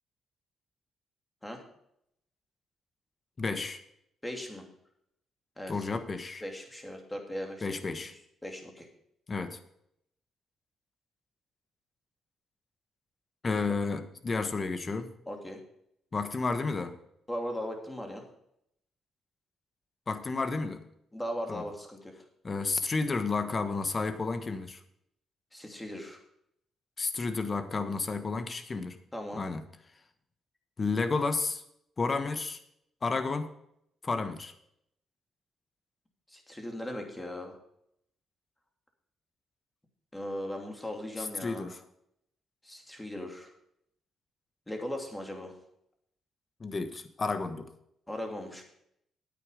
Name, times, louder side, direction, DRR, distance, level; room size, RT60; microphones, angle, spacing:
voice 1, 3.4-3.8 5.7-6.4 7.6-8.1 9.3-9.6 13.4-15.1 16.1-16.9 20.1-20.8 21.5-21.6 22.4-24.8 27.0-29.0 29.4-29.6 30.8-31.6 32.0-32.6 33.0-33.5 34.0-34.5 41.2-41.8 46.6-47.7, left 4 dB, 35° left, 10 dB, 1.3 m, -31 dB
voice 2, 4.2-4.7 5.6-5.9 6.4-7.8 8.4-8.9 15.3-15.6 17.3-18.2 21.1-22.1 25.5-26.2 29.1-29.4 36.3-37.6 40.1-41.7 42.6-43.5 44.7-45.6 48.1-48.6, left 1 dB, 10° left, 2 dB, 2.8 m, -38 dB
9.7 x 9.1 x 5.1 m, 0.74 s
cardioid pair, 90°, 0 cm